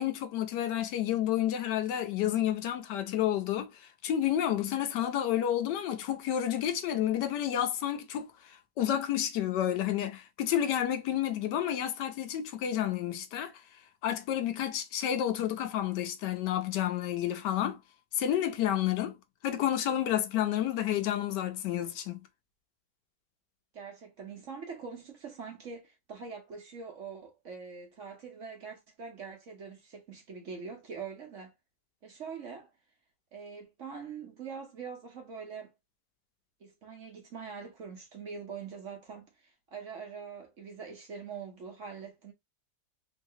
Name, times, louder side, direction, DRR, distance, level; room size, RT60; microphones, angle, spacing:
voice 1, 0.0-13.5 14.0-17.8 18.1-19.2 19.4-22.2, left 11 dB, 80° left, 1.2 m, -30 dB
voice 2, 23.7-31.5 32.0-32.7 33.3-35.7 36.6-42.3, right 6 dB, 55° right, 0.9 m, -43 dB
3.1 x 2.8 x 2.7 m
omnidirectional pair, 1.9 m